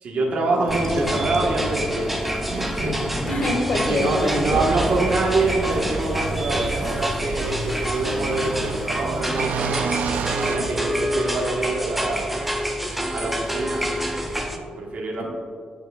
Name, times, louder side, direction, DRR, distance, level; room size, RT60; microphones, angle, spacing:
voice 1, 0.0-2.2 2.5-3.0 3.7-9.7 10.4-12.4 13.1-15.2, right 2 dB, 65° right, -3 dB, 1.4 m, -25 dB
sound 1, 0.5-11.0, equal, 20° left, 1.1 m, -37 dB
sound 2, 0.7-14.6, equal, 5° right, 0.7 m, -27 dB
voice 2, 3.2-4.9, left 1 dB, 70° left, 0 dB, 1.8 m, -25 dB
sound 3, 4.5-11.5, right 7 dB, 80° right, 0.3 m, -31 dB
14.5 x 6.0 x 2.4 m, 2.1 s
cardioid pair, 115°, 3 cm